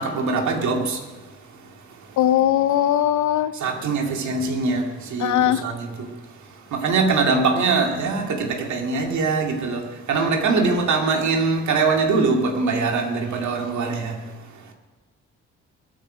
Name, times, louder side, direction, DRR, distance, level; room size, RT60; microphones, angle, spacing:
voice 1, 0.0-2.2 3.5-14.7, right 4 dB, 70° right, 2.4 m, -23 dB
voice 2, 2.2-3.5 5.2-5.6, left 11 dB, 70° left, 0.8 m, -19 dB
22.0 x 8.8 x 5.1 m
cardioid pair, 80°, 30 cm